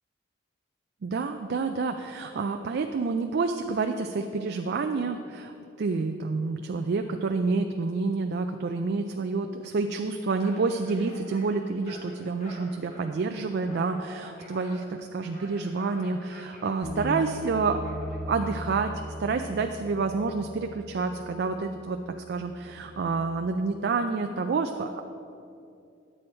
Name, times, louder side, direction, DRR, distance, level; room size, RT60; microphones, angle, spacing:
voice 1, 1.0-17.8 18.3-18.9 19.2-25.0, right 4 dB, 55° right, 6 dB, 0.4 m, -28 dB
sound 1, 10.3-18.8, equal, 40° left, 1.9 m, -49 dB
Bass guitar, 16.8-23.1, equal, 80° left, 1.5 m, -39 dB
10.0 x 7.7 x 4.4 m, 2.6 s
head